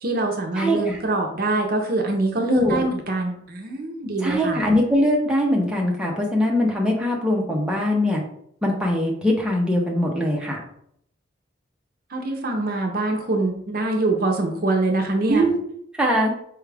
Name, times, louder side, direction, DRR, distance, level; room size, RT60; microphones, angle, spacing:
voice 1, 0.0-4.6 12.1-15.4, right 2 dB, 50° right, 2 dB, 0.6 m, -24 dB
voice 2, 0.6-1.0 2.5-2.8 4.2-8.2 8.6-10.6 15.3-15.6 16.0-16.3, equal, 5° right, -2 dB, 0.6 m, -21 dB
4.7 x 2.4 x 3.3 m, 0.68 s
head